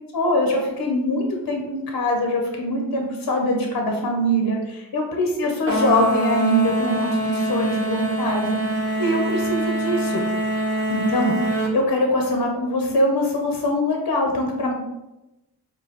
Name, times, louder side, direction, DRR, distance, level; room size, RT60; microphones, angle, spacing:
voice 1, 0.1-10.2 10.9-14.7, equal, 55° left, 1 dB, 0.7 m, -23 dB
sound 1, 5.7-11.8, right 1 dB, 35° right, 1.0 m, -24 dB
4.9 x 2.2 x 2.9 m, 0.97 s
cardioid pair, 50°, 41 cm